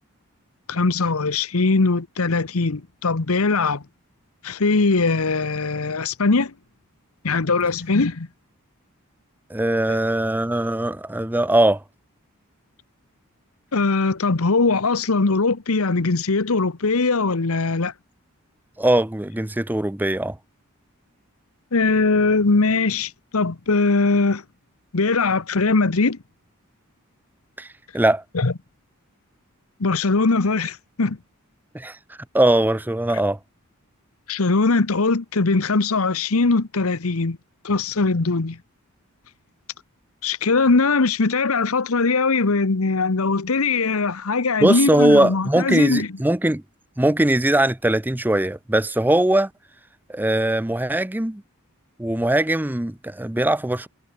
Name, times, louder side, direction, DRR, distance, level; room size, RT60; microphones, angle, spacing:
voice 1, 0.7-3.8 4.4-6.5 7.2-8.3 13.7-17.9 21.7-24.4 24.9-26.2 28.3-28.5 29.8-31.2 34.3-37.4 37.6-38.6 40.2-46.1, left 3 dB, 75° left, 1.1 m, -21 dB
voice 2, 9.5-11.8 18.8-20.4 27.6-27.7 27.9-28.2 31.7-32.0 32.3-33.4 44.6-46.6 47.0-49.5 50.1-51.4 52.0-53.9, right 1 dB, 10° right, 0.5 m, -20 dB
head